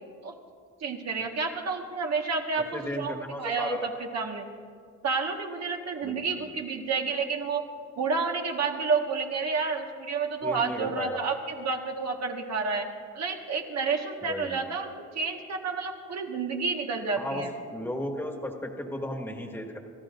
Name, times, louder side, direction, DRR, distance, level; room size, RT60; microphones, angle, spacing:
voice 1, 0.8-3.8 4.1-4.4 5.0-7.6 8.0-12.9 13.1-17.5, right 4 dB, 60° right, 1 dB, 1.6 m, -30 dB
voice 2, 2.7-3.9 6.0-6.5 10.4-11.3 14.2-14.7 17.2-17.4 17.7-19.8, left 1 dB, 5° left, 2 dB, 1.7 m, -35 dB
29.0 x 13.0 x 2.6 m, 2.1 s
cardioid pair, 90°, 30 cm